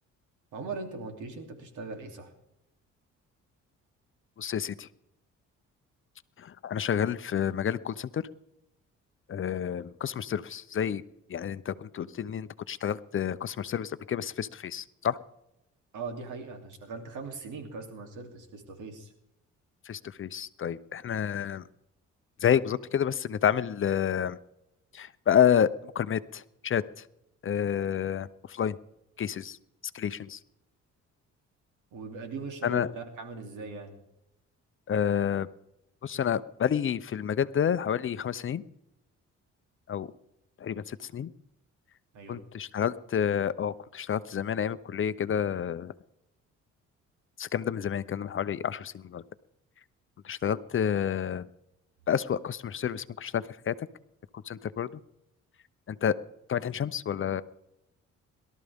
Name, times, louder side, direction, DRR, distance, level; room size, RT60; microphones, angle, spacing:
voice 1, 0.5-2.3 15.9-19.1 31.9-33.9 42.1-42.4, right 4 dB, 80° right, 4 dB, 3.1 m, -40 dB
voice 2, 4.4-4.9 6.4-8.2 9.3-11.0 11.3-15.2 19.9-21.6 22.4-24.4 24.9-27.1 27.4-28.8 29.2-29.6 29.9-30.4 32.6-32.9 34.9-35.5 36.0-38.6 39.9-40.1 40.6-41.3 42.3-45.9 47.4-49.2 50.2-51.5 52.1-53.9 54.4-54.9 55.9-56.2 56.5-57.4, left 8 dB, 45° left, 15 dB, 0.7 m, -29 dB
22.0 x 13.0 x 3.6 m, 0.83 s
cardioid pair, 90°, 30 cm